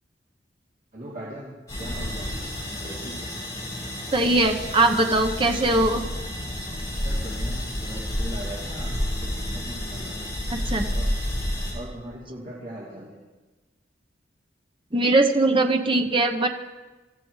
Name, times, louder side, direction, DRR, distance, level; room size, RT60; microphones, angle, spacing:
voice 1, 0.9-2.4 2.8-3.3 7.0-10.3 10.9-11.1 11.7-13.2, right 1 dB, 50° right, -6 dB, 2.9 m, -40 dB
sound 1, 1.7-11.7, left 1 dB, 20° left, 6.8 m, -30 dB
voice 2, 4.1-6.0 10.5-10.8 14.9-16.5, right 2 dB, 30° right, 5 dB, 1.0 m, -21 dB
24.5 x 14.5 x 3.2 m, 1.2 s
head